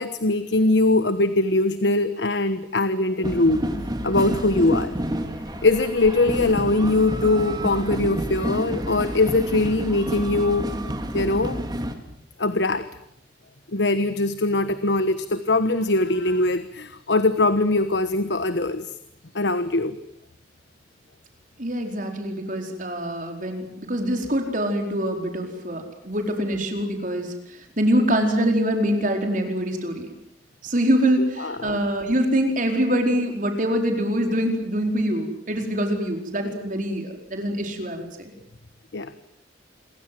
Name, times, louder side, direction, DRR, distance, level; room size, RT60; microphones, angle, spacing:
voice 1, 0.0-3.7 4.0-4.9 5.6-10.7 11.1-11.6 12.4-12.9 13.7-18.9 19.3-20.0 31.2-31.8 38.9-39.2, left 2 dB, 80° left, 11 dB, 1.3 m, -22 dB
sound 1, 3.2-11.9, equal, 25° right, 2.8 m, -29 dB
voice 2, 21.6-27.3 27.8-30.1 30.6-38.3, equal, 45° right, 4 dB, 4.6 m, -24 dB
27.5 x 23.0 x 7.7 m, 0.73 s
head